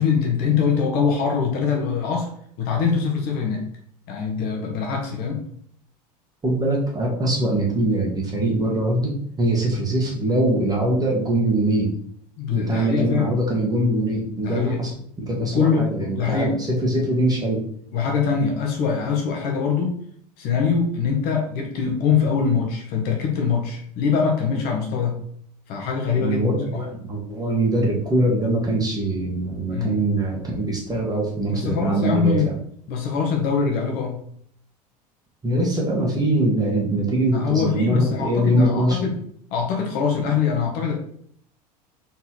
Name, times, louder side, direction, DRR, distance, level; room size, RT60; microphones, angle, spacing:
voice 1, 0.0-2.3 2.6-3.6 4.1-5.4 12.4-13.3 14.4-14.8 15.5-16.6 17.0-17.1 17.9-19.9 20.4-25.2 25.7-26.8 29.7-30.0 31.5-32.5 32.9-34.2 37.3-39.2 39.5-40.9, left 6 dB, 50° left, 1 dB, 1.2 m, -23 dB
voice 2, 6.4-11.9 12.5-17.6 26.2-32.4 35.4-39.1, right 1 dB, 20° right, -2 dB, 1.6 m, -22 dB
4.1 x 4.1 x 3.1 m, 0.64 s
figure-of-eight pair, 75°, 21 cm